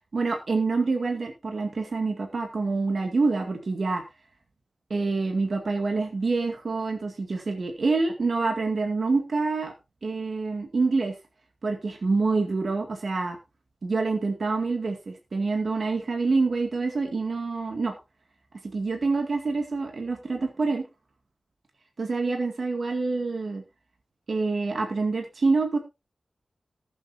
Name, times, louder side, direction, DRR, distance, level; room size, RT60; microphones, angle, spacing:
voice 1, 0.1-4.0 4.9-9.7 10.0-11.2 11.6-13.4 13.8-17.9 18.7-20.9 22.0-23.6 24.3-25.8, right 3 dB, 65° right, 3 dB, 2.1 m, -26 dB
19.5 x 7.9 x 2.7 m, 0.26 s
wide cardioid pair, 110°, 0 cm